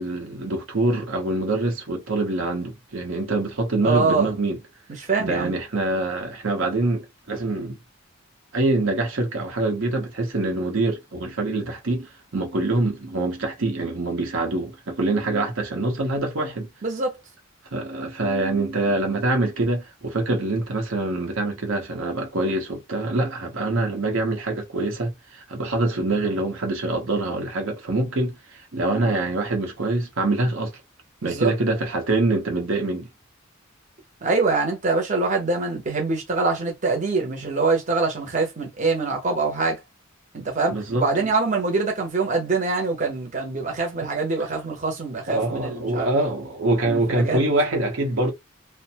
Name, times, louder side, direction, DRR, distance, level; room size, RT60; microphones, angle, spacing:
voice 1, 0.0-4.6 5.2-7.8 8.5-16.7 17.7-30.7 31.2-33.1 40.7-41.3 45.3-48.3, right 2 dB, 75° right, 0.9 m, -25 dB
voice 2, 3.8-4.3 5.0-5.5 16.8-17.2 31.2-31.5 34.2-39.8 40.3-46.1 46.8-47.4, right 3 dB, 40° right, 0.8 m, -24 dB
2.5 x 2.1 x 2.8 m
head